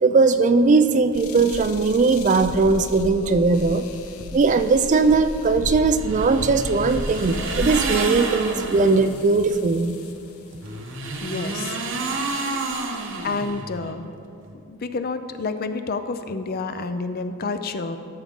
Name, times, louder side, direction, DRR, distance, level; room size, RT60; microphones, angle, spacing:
voice 1, 0.0-3.8 4.3-10.0, right 4 dB, 35° right, 10 dB, 0.3 m, -19 dB
sound 1, 1.1-10.3 11.1-11.5 12.1-12.2 12.7-13.5, left 2 dB, 80° left, 0.6 m, -35 dB
sound 2, 6.0-9.1 10.6-13.9, right 3 dB, 60° right, 0.9 m, -29 dB
voice 2, 11.2-11.8 13.2-14.1 14.7-18.0, left 3 dB, 45° left, 9 dB, 0.5 m, -29 dB
13.5 x 7.2 x 3.7 m, 2.5 s
head